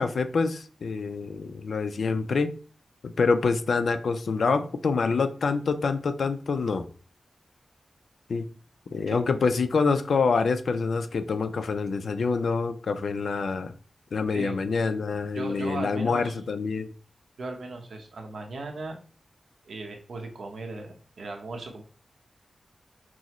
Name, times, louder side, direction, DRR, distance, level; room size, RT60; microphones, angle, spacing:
voice 1, 0.0-2.5 3.0-6.9 8.3-8.5 8.9-13.7 14.1-16.9, left 4 dB, 80° left, 0.4 m, -26 dB
voice 2, 15.3-16.4 17.4-19.0 19.7-21.8, right 2 dB, 85° right, 0.8 m, -37 dB
6.0 x 2.0 x 3.0 m
wide cardioid pair, 120°, 0 cm